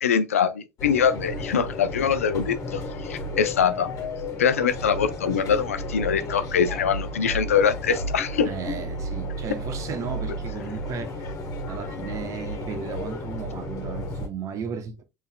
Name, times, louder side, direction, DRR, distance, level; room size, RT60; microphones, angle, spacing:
voice 1, 0.0-3.9 4.4-8.5, left 7 dB, 90° left, 0.4 m, -23 dB
sound 1, 0.8-14.3, left 1 dB, 50° left, 1.3 m, -33 dB
voice 2, 8.4-11.3 11.7-15.0, right 7 dB, 45° right, 0.9 m, -35 dB
5.4 x 3.3 x 2.2 m
hypercardioid pair, 70°, 7 cm